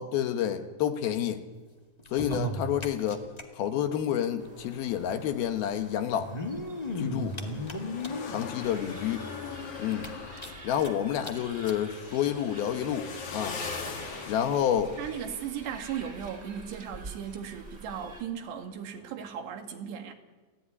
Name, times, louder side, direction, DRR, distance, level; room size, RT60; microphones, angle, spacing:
voice 1, 0.0-1.4 2.1-3.3 3.6-6.3 7.0-7.4 8.3-9.3 9.8-10.1 10.6-13.6 14.3-15.0, left 9 dB, 70° left, 8 dB, 3.0 m, -29 dB
sound 1, 2.0-3.4 3.7-3.8 4.0-4.1 5.1-5.2 6.1-8.4 9.0-9.1 9.4-9.5 9.9-10.9 11.2-11.3 11.6-11.8 12.6-12.7, left 1 dB, 30° left, 0.7 m, -35 dB
sound 2, 4.4-8.1 8.6-18.2, right 2 dB, 20° right, 2.1 m, -48 dB
sound 3, 5.6-16.6 16.8-16.9 19.0-19.2, left 5 dB, 50° left, 3.4 m, -42 dB
voice 2, 15.0-20.1, right 8 dB, 85° right, 5 dB, 4.1 m, -37 dB
30.0 x 15.0 x 9.8 m, 1.3 s
omnidirectional pair, 4.7 m